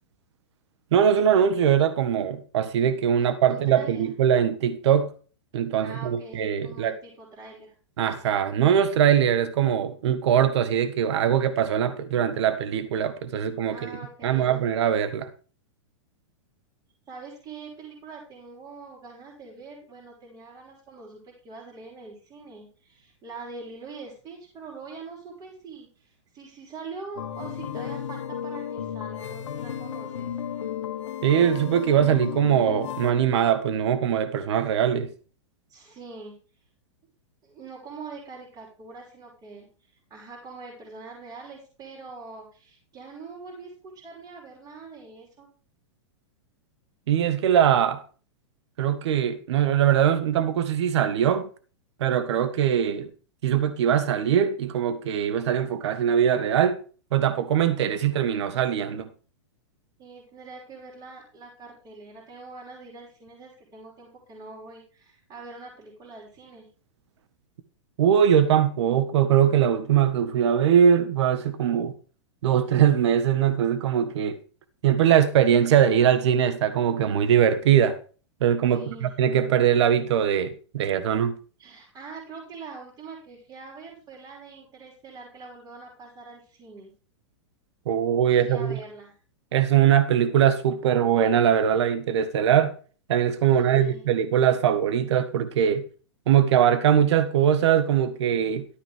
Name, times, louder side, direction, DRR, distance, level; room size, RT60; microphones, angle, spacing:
voice 1, 0.9-5.1 5.5-7.0 8.0-13.9 14.2-15.3 31.2-35.1 47.1-48.0 48.8-51.5 52.0-53.1 53.4-56.8 57.1-59.1 68.0-71.9 72.4-74.4 74.8-78.0 78.4-81.3 87.9-88.8 89.5-92.7 93.1-95.8 96.3-98.7, right 9 dB, 65° right, 1.6 m, -21 dB
voice 2, 3.2-4.1 5.8-7.7 13.4-14.6 17.1-30.4 35.7-36.3 37.4-39.7 40.1-45.5 60.0-66.7 78.7-79.1 81.6-86.9 88.3-89.2 93.5-94.1, right 4 dB, 25° right, 5.8 m, -43 dB
sound 1, 27.2-33.1, left 8 dB, 85° left, 1.7 m, -33 dB
13.5 x 8.8 x 3.6 m
hypercardioid pair, 140°, 15 cm